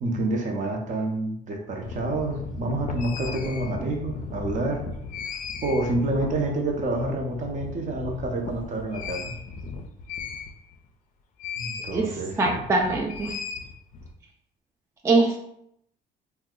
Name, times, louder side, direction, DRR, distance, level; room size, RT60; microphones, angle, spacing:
voice 1, 0.0-4.8 5.6-9.2 11.6-12.6, right 2 dB, 50° right, 2 dB, 0.7 m, -28 dB
sound 1, 1.8-10.9 11.4-12.0 12.3-14.1, left 4 dB, 50° left, 0.4 m, -36 dB
voice 2, 12.4-13.3 15.0-15.4, right 3 dB, 15° right, 0 dB, 0.3 m, -22 dB
2.7 x 2.2 x 3.7 m, 0.75 s
cardioid pair, 110°, 17 cm